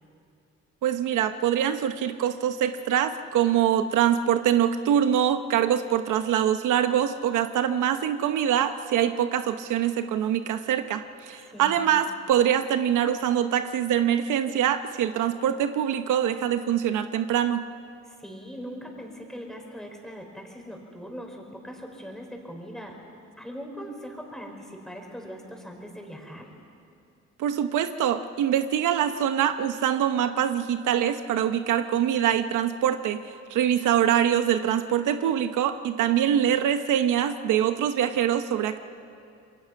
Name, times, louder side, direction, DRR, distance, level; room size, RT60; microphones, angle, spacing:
voice 1, 0.8-17.6 27.4-38.8, right 10 dB, 85° right, 9 dB, 1.0 m, -24 dB
voice 2, 11.5-11.8 18.0-23.1 23.4-26.5, equal, ahead, 1 dB, 4.9 m, -40 dB
27.0 x 22.5 x 5.8 m, 2.5 s
cardioid pair, 90°, 30 cm